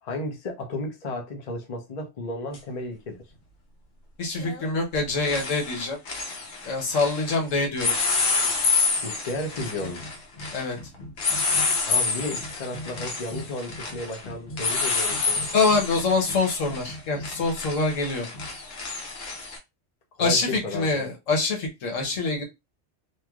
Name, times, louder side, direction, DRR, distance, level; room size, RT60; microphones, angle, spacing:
voice 1, 0.0-3.2 9.0-10.0 11.9-15.5 20.2-21.1, left 2 dB, 40° left, 0.7 m, -33 dB
sound 1, 2.5-2.6 4.4-4.7 4.9-7.4 7.8-19.6, left 4 dB, 65° left, 1.1 m, -28 dB
voice 2, 4.2-6.0 6.6-8.0 10.5-10.8 15.5-18.3 20.2-22.4, left 3 dB, 80° left, 1.3 m, -25 dB
3.2 x 2.7 x 2.3 m
omnidirectional pair, 1.3 m